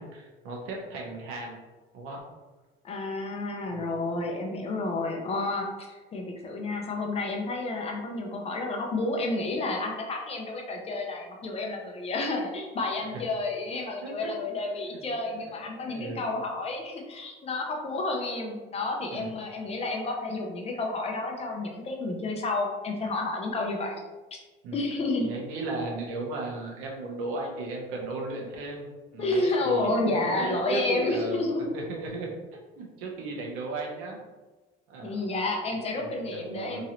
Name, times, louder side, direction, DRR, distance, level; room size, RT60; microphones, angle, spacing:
voice 1, 0.0-1.6 1.9-2.2 3.7-3.8 13.0-13.1 14.0-14.3 15.3-15.4 15.8-16.3 19.1-19.3 24.6-24.8 25.2-32.4 32.8-34.2 34.9-35.2 36.0-36.8, right 2 dB, 85° right, -1 dB, 0.9 m, -35 dB
voice 2, 2.8-24.1 24.3-24.4 24.7-25.3 29.2-31.7 35.0-36.8, left 2 dB, 30° left, 1 dB, 0.5 m, -30 dB
3.0 x 2.5 x 2.9 m, 1.2 s
cardioid pair, 140°, 21 cm